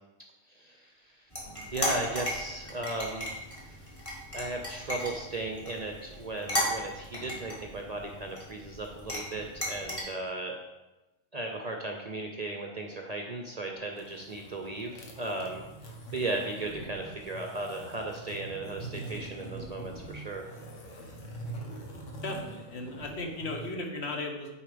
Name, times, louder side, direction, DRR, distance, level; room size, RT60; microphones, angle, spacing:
voice 1, 0.5-1.2 1.7-3.3 3.6-3.7 4.3-10.5 11.3-15.6 16.1-20.5, right 2 dB, 40° right, 2 dB, 0.6 m, -36 dB
sound 1, 1.3-10.0, equal, 25° left, 1.9 m, -36 dB
sound 2, 13.9-23.7, right 2 dB, 80° left, 1.5 m, -44 dB
voice 2, 22.2-24.5, left 2 dB, 60° left, 1 dB, 1.2 m, -36 dB
7.0 x 4.4 x 5.0 m, 1.1 s
omnidirectional pair, 1.3 m